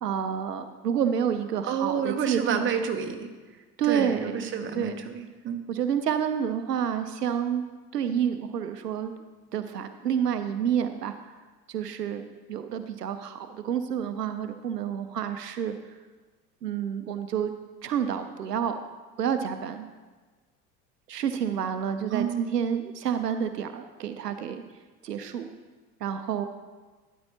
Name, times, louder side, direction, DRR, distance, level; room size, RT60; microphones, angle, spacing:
voice 1, 0.0-2.6 3.8-4.4 4.7-4.9 5.7-7.6 7.9-9.1 9.5-11.1 11.7-15.7 16.6-17.5 17.8-18.7 19.2-19.9 21.1-24.6 25.0-25.5 26.0-26.5, right 8 dB, 80° right, 9 dB, 0.7 m, -29 dB
voice 2, 1.7-3.3 3.9-5.6 22.1-22.5, right 7 dB, 25° right, 5 dB, 1.0 m, -29 dB
12.5 x 10.0 x 2.9 m, 1.3 s
figure-of-eight pair, 75°, 48 cm